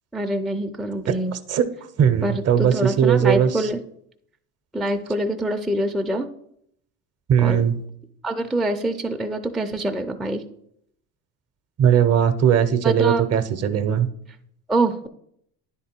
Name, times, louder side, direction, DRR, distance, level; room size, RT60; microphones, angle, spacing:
voice 1, 0.1-1.3 2.2-3.8 4.7-6.3 7.4-7.6 8.2-10.4 12.8-13.2 14.7-15.1, right 1 dB, ahead, 4 dB, 0.4 m, -25 dB
voice 2, 1.1-1.6 2.0-3.7 7.3-7.8 11.8-14.1, right 8 dB, 35° right, 11 dB, 0.7 m, -19 dB
9.9 x 3.8 x 4.4 m, 0.71 s
hypercardioid pair, 75°, 42 cm